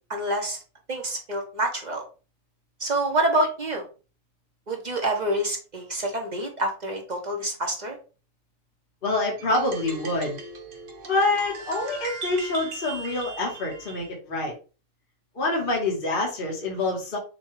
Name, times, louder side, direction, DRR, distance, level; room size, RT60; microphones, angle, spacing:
voice 1, 0.1-0.6 0.9-2.0 2.8-3.9 4.7-8.0, right 1 dB, 40° right, 2 dB, 0.7 m, -27 dB
voice 2, 9.0-10.4 11.0-14.5 15.3-17.2, left 2 dB, 40° left, -2 dB, 1.3 m, -26 dB
sound 1, 9.4-14.1, right 4 dB, 60° right, 1.2 m, -39 dB
6.8 x 2.3 x 3.0 m, 0.34 s
omnidirectional pair, 1.6 m